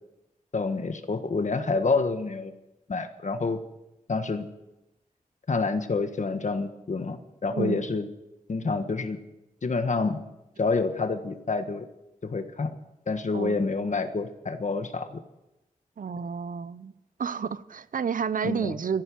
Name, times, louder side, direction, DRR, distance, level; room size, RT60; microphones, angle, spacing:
voice 1, 0.5-2.5 2.9-3.6 4.1-4.5 5.5-8.1 8.5-9.2 9.6-10.2 10.6-11.9 12.2-12.7 13.1-15.2 18.4-18.8, left 4 dB, 60° left, 8 dB, 1.5 m, -28 dB
voice 2, 16.0-16.9 17.2-19.0, right 6 dB, 75° right, 16 dB, 0.7 m, -30 dB
14.0 x 11.0 x 9.3 m, 0.93 s
wide cardioid pair, 105°, 14 cm